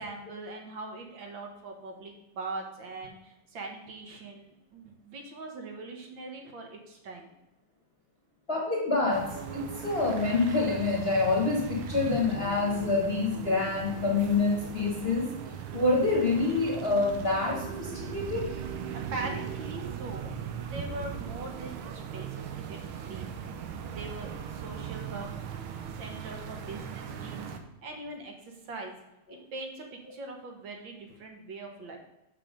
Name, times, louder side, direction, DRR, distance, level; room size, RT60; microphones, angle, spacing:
voice 1, 0.0-7.3 19.1-20.3 20.6-23.3 23.9-25.3 26.0-27.5 27.8-28.9 29.3-32.0, right 2 dB, 65° right, 2 dB, 2.1 m, -41 dB
voice 2, 8.5-15.3 15.7-18.5, left 3 dB, 35° left, -2 dB, 1.3 m, -27 dB
sound 1, 9.1-27.6, right 7 dB, 85° right, 1.7 m, -39 dB
6.8 x 5.8 x 5.1 m, 0.92 s
omnidirectional pair, 2.2 m